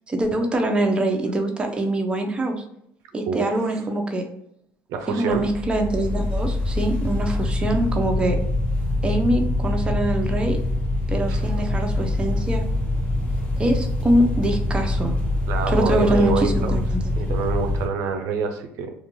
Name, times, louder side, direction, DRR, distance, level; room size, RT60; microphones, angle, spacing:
voice 1, 0.1-2.6 3.1-4.2 5.1-8.4 9.0-10.6 11.1-12.6 13.6-15.2 15.7-17.0, right 1 dB, 15° right, 3 dB, 0.5 m, -23 dB
voice 2, 4.9-5.4 11.3-11.4 15.5-16.8 17.2-18.9, right 5 dB, 70° right, 5 dB, 0.4 m, -26 dB
sound 1, 5.3-17.9, left 1 dB, 20° left, 0.7 m, -24 dB
2.4 x 2.2 x 2.9 m, 0.74 s
supercardioid pair, 105°, 6 cm